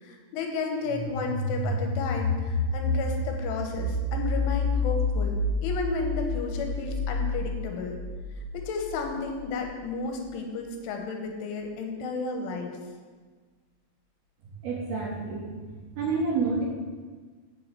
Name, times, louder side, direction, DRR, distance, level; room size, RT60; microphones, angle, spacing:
voice 1, 0.0-8.0 8.5-12.7, left 3 dB, 80° left, 3 dB, 3.3 m, -33 dB
sound 1, 0.8-9.5, left 3 dB, 30° left, 2.8 m, -29 dB
voice 2, 14.6-15.5 16.0-16.6, right 4 dB, 70° right, -3 dB, 2.6 m, -28 dB
7.6 x 7.3 x 6.7 m, 1.4 s
omnidirectional pair, 5.7 m